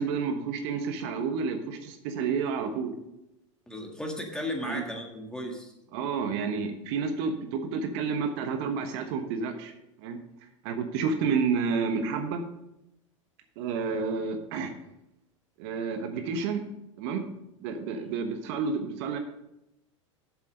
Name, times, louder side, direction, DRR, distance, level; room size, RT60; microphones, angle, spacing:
voice 1, 0.0-3.0 4.6-4.8 5.9-9.7 10.0-10.2 10.6-12.4 13.6-14.7 15.6-16.6 17.0-17.2 17.6-19.2, right 5 dB, 55° right, 6 dB, 1.1 m, -30 dB
voice 2, 3.7-5.7, left 1 dB, 5° left, 2 dB, 1.8 m, -35 dB
7.5 x 7.2 x 5.2 m, 0.88 s
hypercardioid pair, 95°, 17 cm